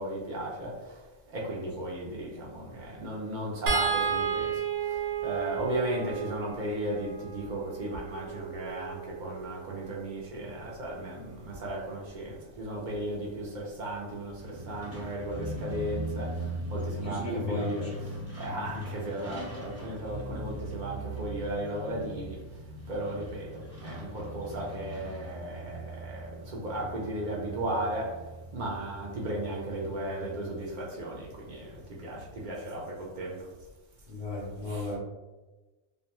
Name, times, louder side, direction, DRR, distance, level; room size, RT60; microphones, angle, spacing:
voice 1, 0.0-22.4 22.9-28.2 28.5-33.5 34.7-34.9, right 1 dB, 55° right, -3 dB, 0.6 m, -35 dB
sound 1, 3.7-10.0 11.5-11.7 12.0-12.2, right 6 dB, 90° right, 0.9 m, -33 dB
Truck, 14.4-32.8, right 1 dB, 15° right, 0.6 m, -41 dB
voice 2, 17.0-17.9 34.1-35.0, left 1 dB, 85° left, -4 dB, 1.0 m, -34 dB
2.5 x 2.1 x 2.9 m, 1.1 s
omnidirectional pair, 1.2 m